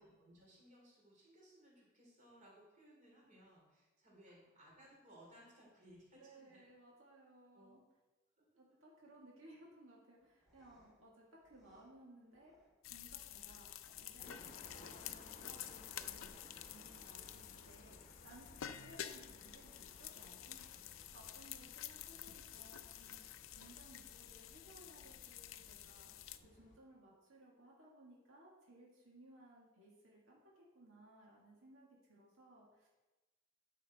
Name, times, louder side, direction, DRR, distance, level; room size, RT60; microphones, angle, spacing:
voice 1, 0.0-6.7 7.5-7.8 17.1-17.5, equal, 40° right, -3 dB, 3.2 m, -63 dB
voice 2, 6.2-7.8 8.6-12.5 12.9-20.7 21.1-32.9, right 1 dB, 80° right, -4 dB, 2.0 m, -61 dB
sound 1, 10.2-18.1, equal, ahead, 3.2 m, -75 dB
sound 2, 12.8-26.4, left 11 dB, 85° left, 0.5 m, -50 dB
sound 3, 14.2-26.8, left 2 dB, 40° left, 0.9 m, -61 dB
11.0 x 5.6 x 4.3 m, 1.1 s
head